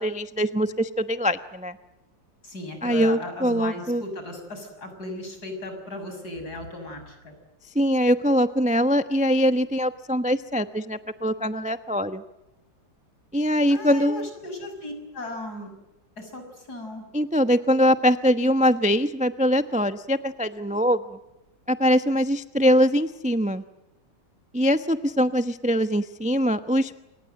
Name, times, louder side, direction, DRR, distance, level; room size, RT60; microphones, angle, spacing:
voice 1, 0.0-1.8 2.8-4.0 7.7-12.2 13.3-14.3 17.1-21.2 21.7-23.6 24.5-27.0, equal, 10° right, 10 dB, 0.5 m, -22 dB
voice 2, 2.4-7.3 13.7-15.7 16.2-17.0, left 1 dB, 55° left, 6 dB, 7.0 m, -36 dB
28.5 x 25.0 x 7.7 m, 0.98 s
omnidirectional pair, 2.0 m